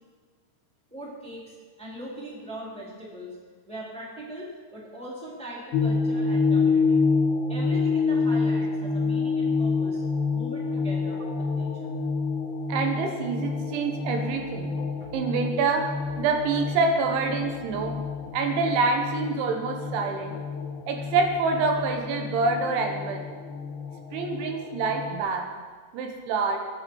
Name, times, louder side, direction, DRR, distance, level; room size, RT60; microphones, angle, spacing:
voice 1, 0.9-3.4 3.6-7.0 7.5-10.0 10.3-11.2 11.5-11.9, equal, ahead, -5 dB, 2.4 m, -40 dB
sound 1, 5.7-25.1, left 4 dB, 60° left, 2.8 m, -28 dB
voice 2, 12.7-14.7 15.1-18.0 18.3-20.4 20.9-23.3 24.1-25.5 25.9-26.6, right 4 dB, 80° right, 4 dB, 3.6 m, -26 dB
21.0 x 9.7 x 4.7 m, 1.5 s
omnidirectional pair, 5.4 m